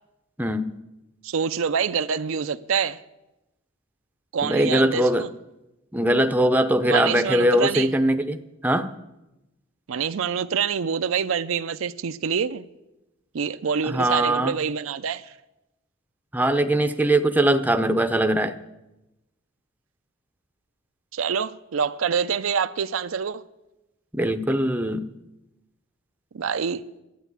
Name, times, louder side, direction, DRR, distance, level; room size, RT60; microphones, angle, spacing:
voice 1, 0.4-0.7 4.4-5.3 5.9-8.9 13.9-14.6 16.3-18.5 24.1-25.1, right 1 dB, 10° right, 0.6 m, -21 dB
voice 2, 1.2-3.0 4.3-5.3 6.9-7.9 9.9-12.6 13.3-15.3 21.1-23.4 26.3-26.8, right 6 dB, 70° right, 0.5 m, -26 dB
12.0 x 9.1 x 8.1 m
head